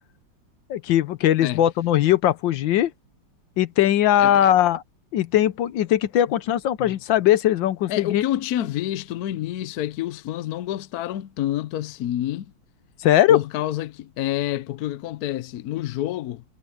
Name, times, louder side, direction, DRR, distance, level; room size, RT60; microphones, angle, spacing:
voice 1, 0.7-2.9 3.6-4.8 5.1-8.2 13.0-13.4, left 12 dB, 80° left, 1.5 m, -19 dB
voice 2, 4.2-4.5 6.8-7.0 7.9-12.5 13.3-16.4, left 13 dB, 65° left, 1.0 m, -28 dB
omnidirectional pair, 2.0 m